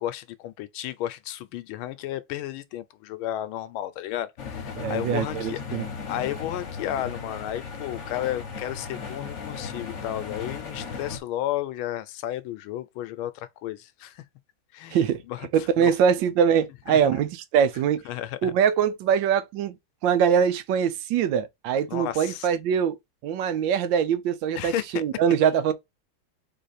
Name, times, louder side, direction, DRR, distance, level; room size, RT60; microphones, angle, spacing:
voice 1, 0.0-5.8 6.1-14.2 14.7-15.9 18.0-18.5 21.9-22.5 24.6-25.0, left 12 dB, 80° left, 1.4 m, -33 dB
sound 1, 4.4-11.2, left 5 dB, 45° left, 1.1 m, -36 dB
voice 2, 4.8-5.9 14.9-15.2 15.5-18.0 18.4-19.8 20.0-23.0 23.2-25.7, right 8 dB, 75° right, 1.2 m, -23 dB
3.9 x 3.2 x 4.1 m
omnidirectional pair, 2.3 m